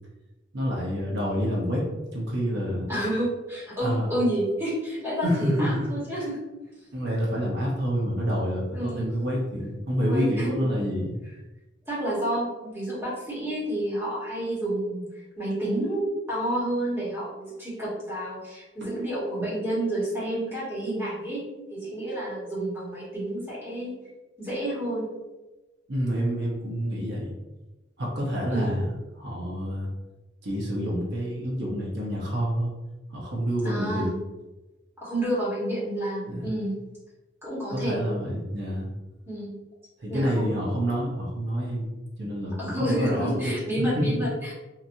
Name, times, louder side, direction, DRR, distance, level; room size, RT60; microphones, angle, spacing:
voice 1, 0.5-2.9 3.8-4.1 5.2-5.9 6.9-11.2 25.9-27.3 28.0-28.9 29.2-29.9 30.4-32.7 33.1-34.2 36.3-36.5 37.7-38.9 40.0-41.9 42.2-44.2, equal, 60° right, -4 dB, 0.7 m, -28 dB
voice 2, 2.9-6.4 8.7-9.1 10.0-10.7 11.9-15.0 15.4-21.4 21.7-23.9 24.4-25.1 28.5-28.7 33.6-34.1 35.0-36.8 37.4-38.1 39.3-39.5 40.1-40.5 42.6-44.5, right 1 dB, 15° right, -9 dB, 1.3 m, -29 dB
2.9 x 2.5 x 2.6 m, 1.1 s
head